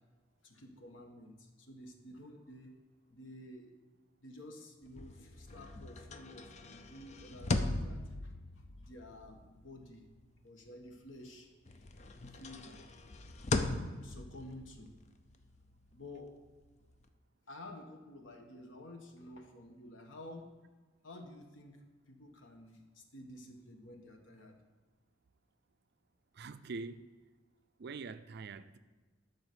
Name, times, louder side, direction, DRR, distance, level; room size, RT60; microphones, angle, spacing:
voice 1, 0.4-2.8 3.1-3.8 4.2-8.3 8.7-10.1 10.4-11.5 12.3-12.9 13.4-13.6 14.0-14.9 15.9-16.3 17.5-20.5 21.0-24.6, left 1 dB, 80° left, 1.3 m, -51 dB
sound 1, 4.9-11.3 11.7-17.1, left 2 dB, 35° left, 0.6 m, -40 dB
voice 2, 26.3-27.0 27.8-28.8, right 4 dB, 60° right, 0.4 m, -44 dB
12.0 x 4.1 x 6.7 m
head